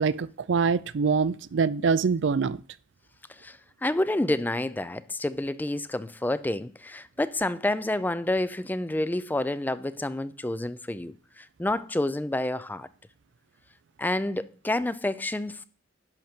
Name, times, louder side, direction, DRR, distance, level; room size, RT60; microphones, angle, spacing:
voice 1, 0.0-2.6, right 5 dB, 70° right, 0.4 m, -24 dB
voice 2, 3.4-12.9 14.0-15.6, left 1 dB, 10° left, 0.3 m, -29 dB
11.0 x 6.4 x 4.3 m
head